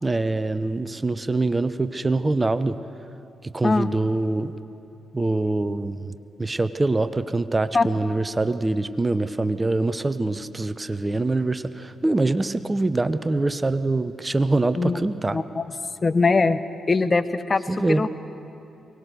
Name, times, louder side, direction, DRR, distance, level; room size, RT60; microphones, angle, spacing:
voice 1, 0.0-2.8 3.4-4.5 5.1-6.1 6.4-15.4 17.7-18.1, right 2 dB, 25° right, 13 dB, 0.9 m, -24 dB
voice 2, 15.3-15.6 16.0-16.6 16.9-17.6 17.9-18.1, left 3 dB, 35° left, 13 dB, 0.9 m, -21 dB
23.0 x 19.0 x 6.6 m, 2.7 s
hypercardioid pair, 40°, 0 cm